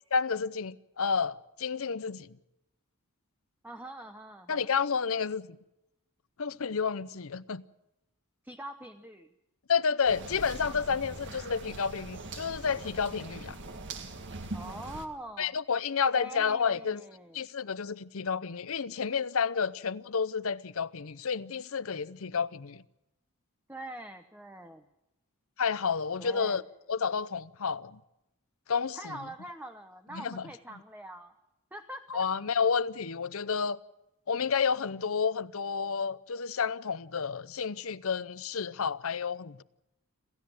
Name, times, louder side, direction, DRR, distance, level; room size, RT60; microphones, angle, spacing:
voice 1, 0.1-2.4 4.5-5.6 6.4-7.6 9.7-13.6 15.4-17.0 17.3-22.8 25.6-26.6 26.9-28.0 28.7-29.2 30.1-30.5 32.1-33.8 34.3-39.6, left 6 dB, 65° left, 0.7 m, -30 dB
voice 2, 3.6-4.7 8.4-9.3 14.5-15.5 16.1-17.4 23.7-24.8 26.2-26.6 29.0-31.3 31.7-32.3, right 1 dB, 10° right, 0.9 m, -43 dB
sound 1, 10.1-15.1, right 2 dB, 55° right, 1.9 m, -42 dB
27.5 x 15.5 x 7.7 m
head